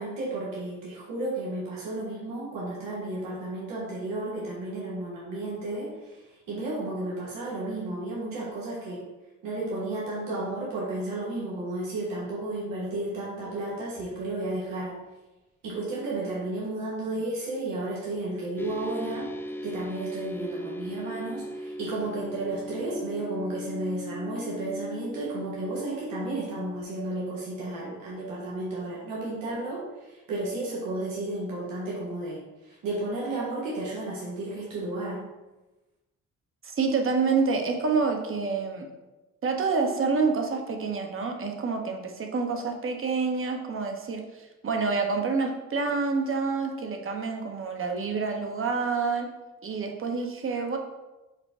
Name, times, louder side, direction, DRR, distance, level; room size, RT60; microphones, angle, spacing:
voice 1, 0.0-9.0 9.4-15.0 15.6-19.3 19.6-35.2, right 2 dB, 85° right, -6 dB, 1.3 m, -33 dB
sound 1, 18.6-26.8, left 1 dB, 5° left, 0.5 m, -38 dB
voice 2, 36.6-38.9 39.4-49.3 49.6-50.8, right 4 dB, 40° right, 3 dB, 0.9 m, -28 dB
4.9 x 2.2 x 4.8 m, 1.1 s
supercardioid pair, 60°, 32 cm